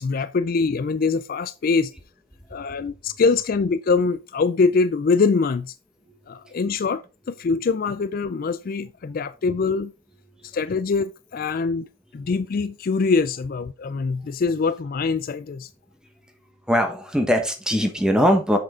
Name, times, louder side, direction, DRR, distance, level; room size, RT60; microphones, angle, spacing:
voice 1, 0.0-1.9 2.5-5.7 6.3-9.9 10.4-11.9 12.1-15.7, left 4 dB, 45° left, 0.4 m, -23 dB
voice 2, 16.7-18.6, equal, 5° right, 1.4 m, -21 dB
7.5 x 6.6 x 3.7 m
head